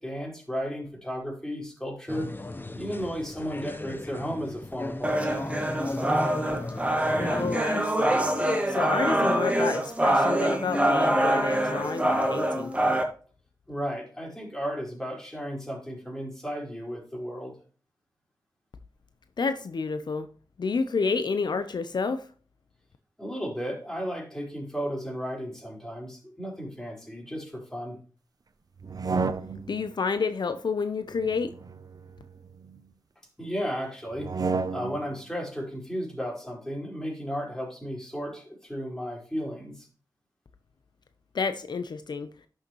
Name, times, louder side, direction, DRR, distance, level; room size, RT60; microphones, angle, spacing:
voice 1, 0.0-2.3 2.7-5.4 13.7-17.6 23.2-28.0 33.4-34.3 34.7-39.9, equal, 5° left, -2 dB, 4.5 m, -34 dB
sound 1, 2.1-7.6, left 2 dB, 25° left, 0.8 m, -36 dB
sound 2, 5.0-13.0, right 1 dB, 15° right, 1.7 m, -25 dB
voice 2, 7.3-8.2 8.7-12.7 19.4-20.3 20.6-22.3 29.7-31.5 41.3-42.3, left 4 dB, 70° left, 10 dB, 0.7 m, -29 dB
sound 3, 28.8-29.9 31.2-32.8 34.1-35.1, right 4 dB, 55° right, 0.6 m, -32 dB
11.5 x 6.4 x 3.1 m, 0.40 s
cardioid pair, 60°, 8 cm